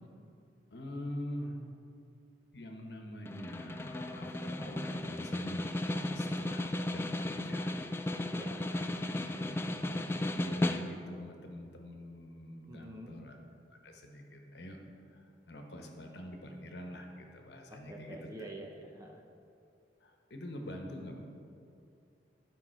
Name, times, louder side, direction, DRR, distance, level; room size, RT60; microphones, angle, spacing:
voice 1, 0.7-1.6 2.5-8.0 8.7-8.9 9.4-10.0 10.3-13.3 13.8-14.8 15.1-18.2 20.0-21.2, equal, 65° left, 2 dB, 1.1 m, -45 dB
Snare drum, 3.3-11.2, left 1 dB, 15° left, 0.3 m, -35 dB
voice 2, 8.3-8.7 12.7-13.2 17.7-19.2, right 1 dB, 20° right, 1 dB, 0.7 m, -47 dB
12.5 x 5.4 x 4.5 m, 2.6 s
head